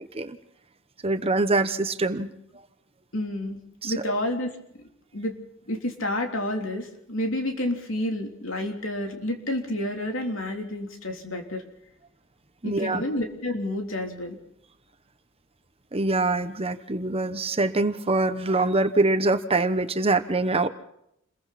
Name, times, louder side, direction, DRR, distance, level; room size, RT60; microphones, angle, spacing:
voice 1, 1.0-2.3 3.8-4.1 12.6-13.0 15.9-20.7, right 2 dB, 30° right, 9 dB, 1.0 m, -24 dB
voice 2, 3.1-4.5 5.1-5.4 5.7-11.6 12.6-14.4, left 1 dB, 70° left, 3 dB, 3.4 m, -30 dB
29.0 x 22.0 x 4.2 m, 0.74 s
head